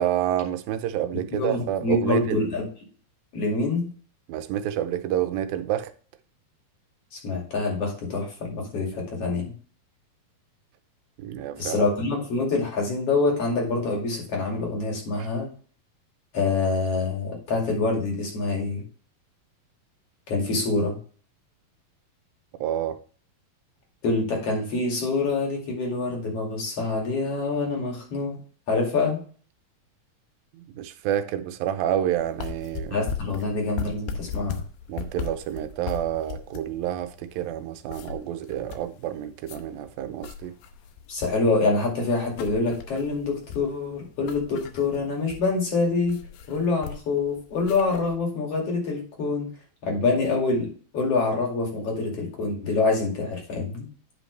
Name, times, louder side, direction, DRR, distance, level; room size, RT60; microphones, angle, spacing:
voice 1, 0.0-2.4 4.3-5.9 11.2-11.9 15.2-15.3 22.6-23.0 30.5-33.1 34.9-40.5, right 11 dB, 90° right, 2.5 m, -28 dB
voice 2, 1.3-2.6 3.3-3.9 7.1-9.5 11.6-15.5 16.3-18.8 20.3-21.0 24.0-28.4 28.7-29.2 32.9-34.6 41.1-46.2 46.5-49.5 49.8-53.9, left 3 dB, 45° left, 3.2 m, -26 dB
sound 1, 32.2-48.2, left 7 dB, 85° left, 2.6 m, -38 dB
10.5 x 5.5 x 3.3 m
omnidirectional pair, 4.0 m